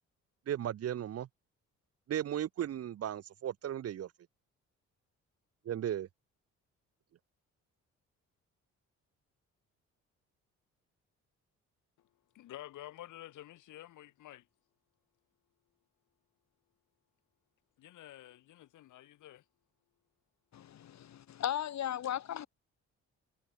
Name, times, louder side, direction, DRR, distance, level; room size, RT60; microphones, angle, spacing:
voice 1, 0.5-1.3 2.1-4.1 5.7-6.1, right 10 dB, 55° right, 0.8 m, -35 dB
voice 2, 12.3-14.5 17.8-19.4, left 14 dB, 80° left, 4.1 m, -50 dB
voice 3, 20.5-22.5, left 10 dB, 65° left, 2.3 m, -36 dB
cardioid pair, 90°, 30 cm